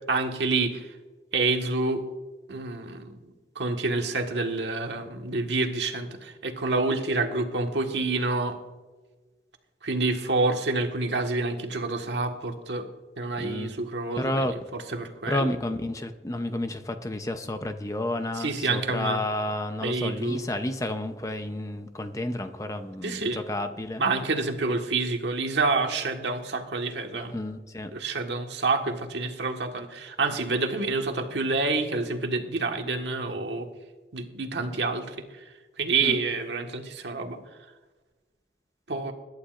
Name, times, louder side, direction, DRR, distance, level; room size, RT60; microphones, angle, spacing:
voice 1, 0.1-0.9 1.3-2.0 2.5-3.1 3.5-8.6 9.8-12.9 13.2-15.5 18.3-19.2 19.8-20.4 23.0-23.4 24.0-27.3 27.9-33.7 34.1-35.1 35.8-37.4 38.9-39.1, right 3 dB, 90° right, 4 dB, 1.6 m, -28 dB
voice 2, 13.4-13.7 14.2-14.5 15.3-24.0 27.3-27.9 36.0-36.2, left 1 dB, 20° left, 8 dB, 0.7 m, -31 dB
22.0 x 11.5 x 2.5 m, 1.3 s
head